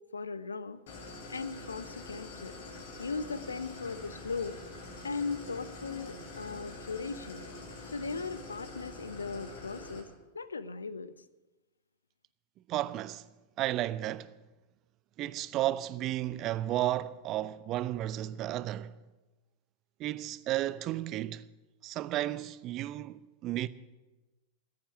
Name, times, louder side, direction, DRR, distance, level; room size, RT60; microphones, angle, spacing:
voice 1, 0.1-0.8 1.3-2.6 3.0-4.6 5.0-7.4 7.9-10.1 10.3-11.2, left 4 dB, 75° left, 0.6 m, -38 dB
Idling, 0.9-10.0, left 2 dB, 55° left, 2.7 m, -45 dB
voice 2, 12.7-13.2 13.6-14.3 15.2-18.9 20.0-21.5 21.8-23.7, right 14 dB, 35° right, 0.5 m, -33 dB
14.5 x 8.6 x 9.2 m
figure-of-eight pair, 90°, 0 cm